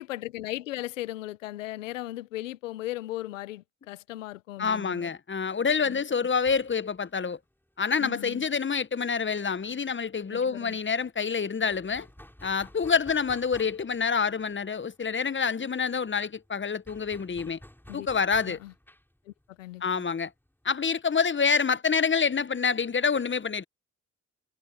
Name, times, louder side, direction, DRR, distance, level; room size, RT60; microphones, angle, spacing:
voice 1, 0.0-5.1 5.9-6.0 8.0-8.4 10.3-10.8 17.9-18.1 18.5-18.7 19.2-20.0, left 16 dB, 90° left, 1.2 m, -37 dB
voice 2, 4.6-7.4 7.8-12.1 12.4-17.6 17.9-18.6 19.8-20.3 20.6-23.6, left 5 dB, 30° left, 1.2 m, -27 dB
sound 1, 6.4-9.8 10.0-10.2 10.4-21.4, left 1 dB, 5° left, 8.0 m, -54 dB
hypercardioid pair, 40°, 37 cm